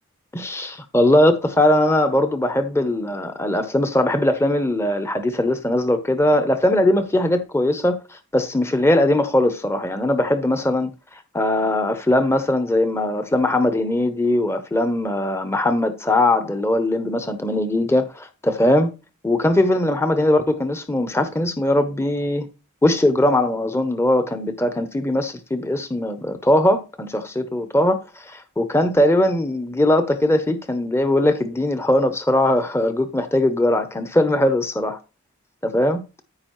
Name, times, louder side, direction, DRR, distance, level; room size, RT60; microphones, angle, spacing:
voice 1, 0.3-18.9 19.2-22.5 22.8-35.0 35.6-36.0, left 1 dB, 10° left, 0.6 m, -20 dB
13.5 x 4.9 x 3.0 m
head